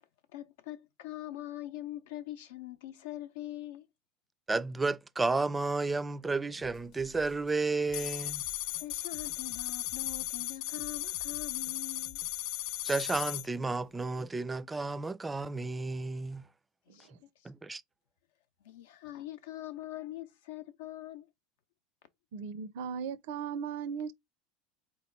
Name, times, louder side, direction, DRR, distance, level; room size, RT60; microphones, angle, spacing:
voice 1, 0.3-3.9 8.7-12.2 16.9-17.1 17.4-17.5 18.6-21.3, left 14 dB, 80° left, 0.7 m, -43 dB
voice 2, 4.5-8.5 12.8-16.5 17.4-17.8, right 3 dB, 15° right, 0.4 m, -32 dB
sound 1, 6.6-12.4, left 7 dB, 45° left, 0.8 m, -56 dB
sound 2, 7.9-13.5, left 15 dB, 65° left, 0.3 m, -36 dB
voice 3, 22.3-24.1, right 7 dB, 75° right, 0.5 m, -37 dB
4.0 x 3.0 x 4.4 m
supercardioid pair, 115°, 0 cm